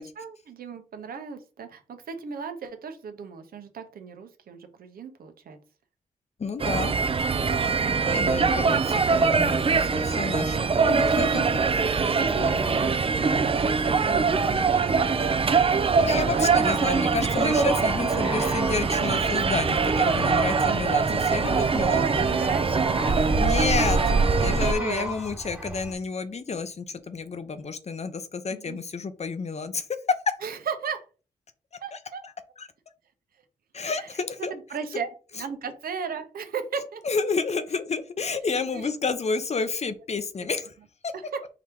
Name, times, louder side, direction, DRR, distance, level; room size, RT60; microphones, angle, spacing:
voice 1, 0.0-5.6 7.5-7.9 11.4-11.8 12.0-16.5 16.9-17.0 21.6-23.4 24.4-24.5 24.7-25.1 28.5-28.8 30.4-31.0 31.8-32.2 33.8-34.1 34.4-35.1 35.3-37.0 38.7-38.9 41.1-41.2, right 6 dB, 80° right, 8 dB, 0.9 m, -36 dB
voice 2, 6.4-6.9 7.6-7.7 8.0-11.4 16.0-22.2 23.4-24.0 24.3-29.9 31.9-32.0 32.6-32.7 33.7-34.5 37.0-40.7, left 4 dB, 45° left, 11 dB, 0.7 m, -30 dB
sound 1, 6.6-24.7, right 5 dB, 40° right, 0.5 m, -23 dB
sound 2, 16.5-25.9, right 1 dB, 10° right, 1.2 m, -36 dB
4.7 x 2.9 x 3.6 m, 0.35 s
cardioid pair, 55°, 15 cm